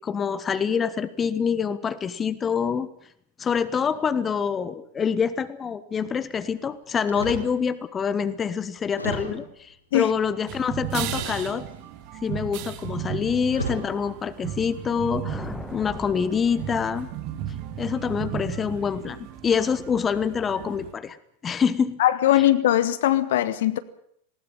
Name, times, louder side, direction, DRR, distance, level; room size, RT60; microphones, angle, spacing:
voice 1, 0.0-2.9 3.4-11.6 12.2-17.1 17.8-21.2 21.4-22.0 22.4-22.5, left 6 dB, 20° left, 15 dB, 1.3 m, -26 dB
sound 1, 7.1-7.6 8.2-8.3 8.9-9.6 11.0-11.7 12.8-13.0 13.5-13.9 14.6-14.9, right 1 dB, 85° left, 5.2 m, -33 dB
sound 2, 10.5-20.9, right 10 dB, 45° right, 2.0 m, -35 dB
sound 3, 14.9-17.4, left 2 dB, 5° left, 1.8 m, -40 dB
voice 2, 22.0-23.8, left 13 dB, 55° left, 14 dB, 1.3 m, -20 dB
20.0 x 18.5 x 8.8 m, 0.68 s
figure-of-eight pair, 90°, 0 cm